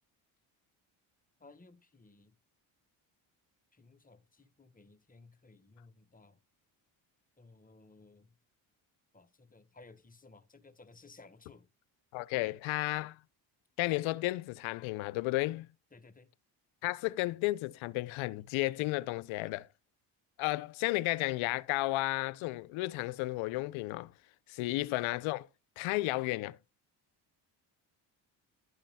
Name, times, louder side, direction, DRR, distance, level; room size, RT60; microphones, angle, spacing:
voice 1, 1.4-2.4 3.7-6.4 7.4-8.3 9.1-11.7 15.9-16.3, left 3 dB, 15° left, 1.3 m, -58 dB
voice 2, 12.1-13.2 13.8-15.7 16.8-19.7 20.4-24.1 24.5-25.5 25.8-26.6, left 20 dB, 75° left, 0.6 m, -33 dB
11.5 x 8.8 x 2.2 m
supercardioid pair, 70°, 49 cm